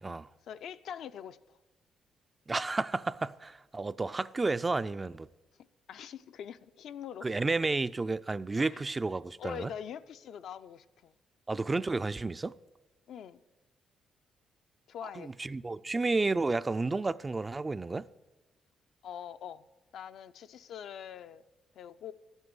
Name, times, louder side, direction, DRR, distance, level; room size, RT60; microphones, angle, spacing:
voice 1, 0.5-1.6 5.9-7.4 8.6-8.9 9.4-11.1 13.1-13.4 14.9-15.3 19.0-19.6 19.9-21.4 21.7-22.1, left 9 dB, 70° left, 0.5 m, -44 dB
voice 2, 2.5-5.3 7.2-9.7 11.5-12.5 15.0-18.1, right 3 dB, 25° right, 0.4 m, -31 dB
12.5 x 8.1 x 9.5 m
cardioid pair, 90°, 0 cm